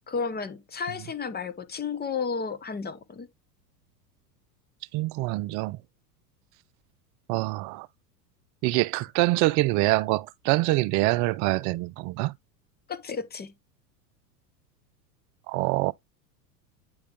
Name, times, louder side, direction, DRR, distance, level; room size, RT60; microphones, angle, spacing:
voice 1, 0.1-3.3 12.9-13.5, left 5 dB, 20° left, 1.1 m, -32 dB
voice 2, 4.9-5.8 7.3-7.9 8.6-12.3 15.5-15.9, right 20 dB, 40° right, 0.5 m, -25 dB
9.4 x 3.5 x 3.5 m
hypercardioid pair, 90°, 49 cm